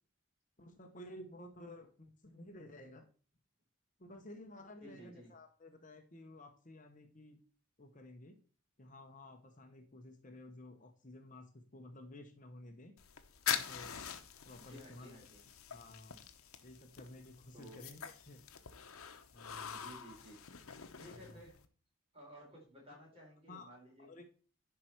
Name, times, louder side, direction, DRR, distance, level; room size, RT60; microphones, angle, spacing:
voice 1, 0.6-3.1 4.0-7.4 7.8-8.4 8.8-13.0 13.5-14.0 14.4-15.1 15.7-16.2 16.6-18.4 19.3-19.9 21.0-21.4 22.9-23.0 23.5-24.2, left 1 dB, 35° left, 5 dB, 0.9 m, -53 dB
voice 2, 4.8-5.3 14.6-15.5 17.5-17.8 19.7-20.4 20.9-21.6 22.1-24.3, right 1 dB, 25° right, -2 dB, 4.3 m, -55 dB
sound 1, 13.0-21.7, left 9 dB, 90° left, 0.9 m, -44 dB
10.5 x 4.7 x 4.5 m, 0.39 s
head